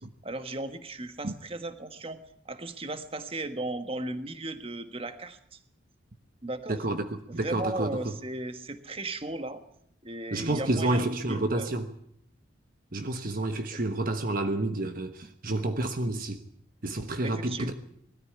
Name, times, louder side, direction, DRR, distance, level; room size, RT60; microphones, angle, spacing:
voice 1, 0.2-5.6 6.4-6.8 7.4-9.6 10.0-11.7 13.7-13.8 17.2-17.7, right 2 dB, 30° right, 1.4 m, -36 dB
voice 2, 6.7-8.1 10.3-11.9 12.9-16.4 16.8-17.7, right 2 dB, 45° right, 1.2 m, -29 dB
20.0 x 14.0 x 9.6 m
head